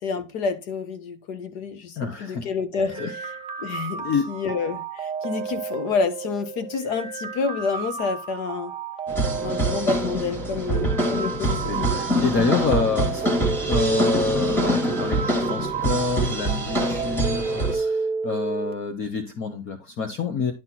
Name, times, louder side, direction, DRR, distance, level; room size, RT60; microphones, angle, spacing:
voice 1, 0.0-3.0 3.6-8.7 9.4-12.2, left 5 dB, 65° left, 1.6 m, -28 dB
voice 2, 2.0-2.5 2.9-3.1 4.0-4.3 11.0-11.1 11.3-20.5, left 5 dB, 35° left, 1.1 m, -28 dB
sound 1, 2.7-18.7, right 5 dB, 15° right, 0.7 m, -31 dB
sound 2, 9.1-17.7, right 1 dB, 5° left, 1.5 m, -25 dB
10.5 x 4.5 x 4.2 m
supercardioid pair, 150°, 36 cm